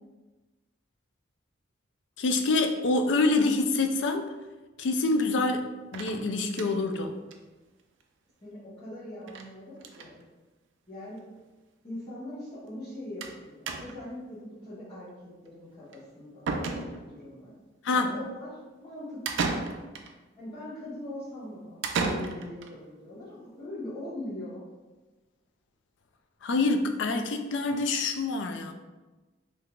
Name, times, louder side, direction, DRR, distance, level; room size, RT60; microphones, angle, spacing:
voice 1, 2.2-4.2 4.8-7.1 17.8-18.1 26.4-28.7, left 3 dB, 70° left, 6 dB, 0.3 m, -26 dB
sound 1, 5.9-7.0 7.3-7.4 7.7-7.8 8.0-8.1 9.3-9.5 9.8-10.1 11.0-11.1 11.4-11.5 13.2-13.4 13.7-14.1 15.9-16.0 16.5-17.2 19.3-20.1 21.8-22.7, right 4 dB, 80° right, 0.4 m, -33 dB
voice 2, 8.4-10.2 10.9-11.2 11.8-17.5 17.9-19.6 20.4-24.6, left 1 dB, 30° left, -15 dB, 1.2 m, -41 dB
3.6 x 2.7 x 2.3 m, 1.2 s
head